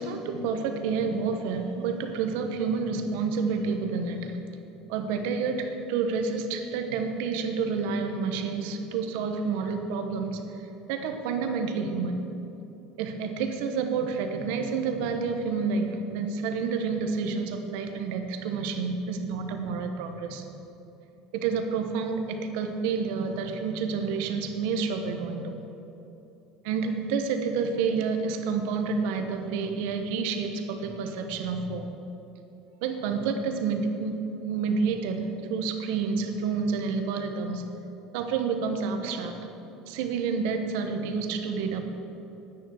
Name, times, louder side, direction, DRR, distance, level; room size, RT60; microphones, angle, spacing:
voice 1, 0.0-4.4 4.9-12.2 13.0-20.4 21.3-25.6 26.6-31.9 32.8-37.6 38.1-39.4 39.9-41.8, right 5 dB, 75° right, 6 dB, 1.2 m, -29 dB
9.9 x 9.4 x 6.4 m, 3.0 s
cardioid pair, 145°, 0 cm